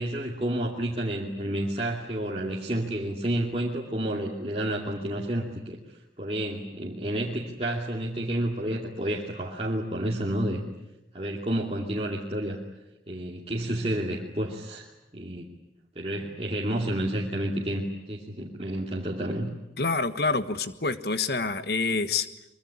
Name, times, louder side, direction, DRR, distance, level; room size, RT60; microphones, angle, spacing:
voice 1, 0.0-5.8 6.2-10.6 11.1-12.6 13.1-14.9 15.1-15.5 16.0-17.8 18.1-19.6, right 1 dB, 35° right, -3 dB, 2.7 m, -30 dB
voice 2, 19.8-22.3, left 4 dB, 60° left, 11 dB, 1.5 m, -27 dB
24.5 x 23.5 x 10.0 m, 0.91 s
head